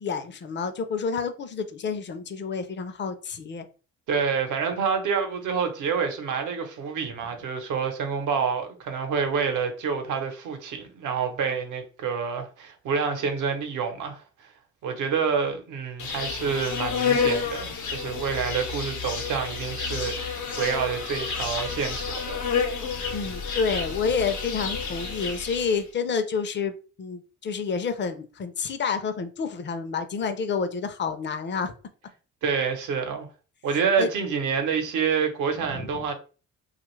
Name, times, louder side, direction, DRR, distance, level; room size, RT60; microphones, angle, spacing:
voice 1, 0.0-3.6 23.1-26.7 27.0-31.7 34.0-34.1 35.7-36.0, left 5 dB, 40° left, 0.5 m, -29 dB
voice 2, 4.1-14.5 14.8-22.4 32.4-33.3 33.6-36.1, right 6 dB, 80° right, 0.8 m, -28 dB
Insect, 16.0-25.8, left 5 dB, 85° left, 0.9 m, -30 dB
2.9 x 2.4 x 3.1 m
cardioid pair, 90°, 30 cm